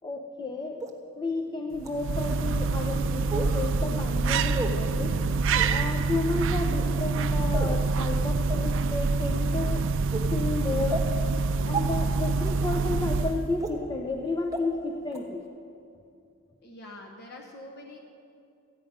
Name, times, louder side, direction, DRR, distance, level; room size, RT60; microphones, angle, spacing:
voice 1, 0.0-0.8 1.2-5.2 5.7-9.8 10.3-11.1 11.7-15.4, left 3 dB, 20° left, 1 dB, 0.6 m, -32 dB
sound 1, 0.8-0.9 1.8-1.9 3.3-3.5 4.5-4.7 5.5-5.7 6.7-7.0 7.5-7.8 8.5-8.6 9.2-9.4 10.1-10.2 10.9-11.0 11.7-11.8 12.7-12.8 13.6-13.7 14.5-14.6 15.1-15.2, right 2 dB, 15° right, 1.2 m, -32 dB
sound 2, 1.8-13.6, right 4 dB, 60° right, 0.4 m, -26 dB
voice 2, 16.6-18.0, left 1 dB, 50° left, 0 dB, 1.0 m, -45 dB
15.0 x 9.3 x 5.4 m, 2.5 s
head